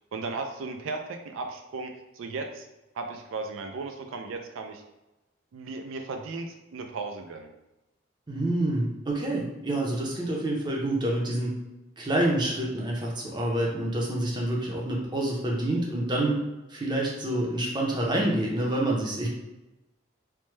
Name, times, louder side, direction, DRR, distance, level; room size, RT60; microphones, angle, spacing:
voice 1, 0.1-2.7 2.9-4.8 5.5-7.5, right 3 dB, 80° right, 4 dB, 0.3 m, -36 dB
voice 2, 8.3-11.5 12.0-16.4 16.7-19.3, right 1 dB, 20° right, -2 dB, 0.5 m, -27 dB
3.2 x 2.1 x 3.1 m, 1.0 s
head